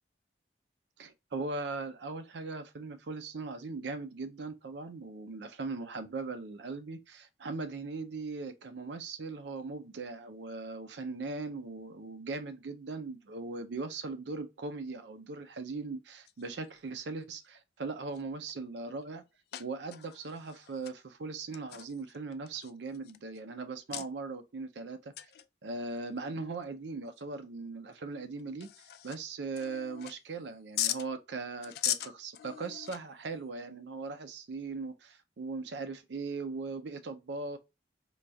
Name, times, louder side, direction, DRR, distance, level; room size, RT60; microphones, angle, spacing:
voice 1, 1.0-19.2 19.6-25.1 25.6-28.7 29.0-37.6, right 3 dB, 80° right, 0.5 m, -39 dB
sound 1, 16.3-16.7 17.5-17.6 18.0-18.5 19.0-19.1 19.5-21.0 21.5-23.4 23.9-24.1 25.1-25.5 25.8-25.9 26.5-26.6 27.2-27.3 27.9-28.0 28.4-29.2 29.5-30.4 30.7-31.0 31.6-33.3, left 12 dB, 60° left, 0.3 m, -38 dB
4.4 x 2.3 x 2.6 m
head